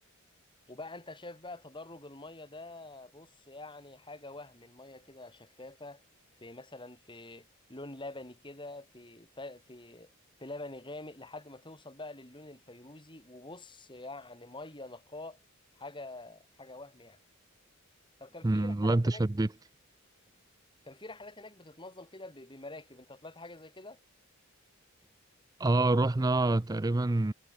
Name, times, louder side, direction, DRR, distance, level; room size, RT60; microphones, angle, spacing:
voice 1, 0.7-6.0 6.4-10.1 10.4-15.4 15.8-17.2 18.2-19.2 20.8-24.0, left 2 dB, 20° left, 3.8 m, -46 dB
voice 2, 18.4-19.5 25.6-27.3, right 2 dB, 15° right, 0.4 m, -26 dB
head